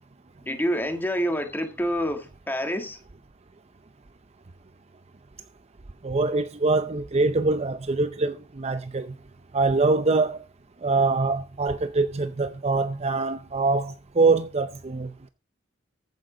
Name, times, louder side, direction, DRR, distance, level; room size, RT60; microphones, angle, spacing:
voice 1, 0.4-3.0, equal, 10° left, 1.6 m, -27 dB
voice 2, 6.0-9.1 9.5-10.4 10.8-15.3, right 3 dB, 30° right, 0.6 m, -24 dB
14.5 x 9.2 x 3.8 m
head